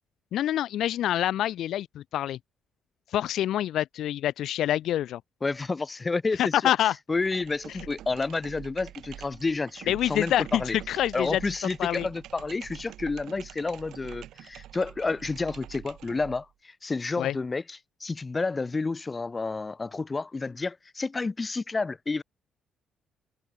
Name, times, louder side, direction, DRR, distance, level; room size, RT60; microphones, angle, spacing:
voice 1, 0.3-2.4 3.1-5.2 6.4-6.9 9.9-11.5 11.8-12.1 17.2-17.4, left 12 dB, 75° left, 0.5 m, -26 dB
voice 2, 5.4-6.6 7.1-10.8 11.1-22.2, left 3 dB, 25° left, 2.2 m, -30 dB
sound 1, 7.1-16.5, right 12 dB, 80° right, 7.3 m, -46 dB
cardioid pair, 90°, 0 cm